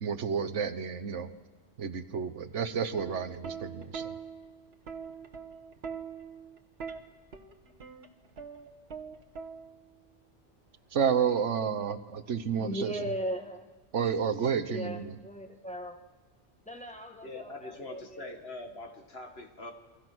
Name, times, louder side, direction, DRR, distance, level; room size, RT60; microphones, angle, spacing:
voice 1, 0.0-1.3 1.8-4.1 10.9-12.9 13.9-15.0, right 7 dB, 75° right, 9 dB, 1.4 m, -30 dB
Plucked string instrument, 3.0-10.0 11.1-11.4, right 6 dB, 60° right, 1.6 m, -43 dB
voice 2, 12.6-13.7 14.7-16.0 16.6-18.4, equal, 5° left, 4 dB, 1.9 m, -38 dB
voice 3, 17.2-19.7, left 2 dB, 55° left, 4 dB, 2.2 m, -43 dB
28.5 x 23.0 x 6.2 m, 1.3 s
omnidirectional pair, 1.2 m